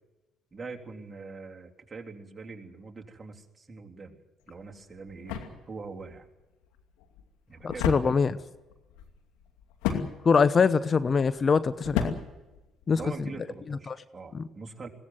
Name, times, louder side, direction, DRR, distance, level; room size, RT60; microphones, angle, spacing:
voice 1, 0.5-4.2 4.5-5.4 5.7-6.3 7.5-7.9 12.9-14.9, right 4 dB, 25° right, 1 dB, 3.5 m, -43 dB
sound 1, 4.4-13.3, left 8 dB, 80° left, 2.5 m, -36 dB
voice 2, 7.6-8.4 9.9-12.1 12.9-13.0 13.9-14.0 14.3-14.4, left 5 dB, 40° left, 14 dB, 0.8 m, -23 dB
21.5 x 17.5 x 7.8 m, 1.1 s
hypercardioid pair, 60°, 0 cm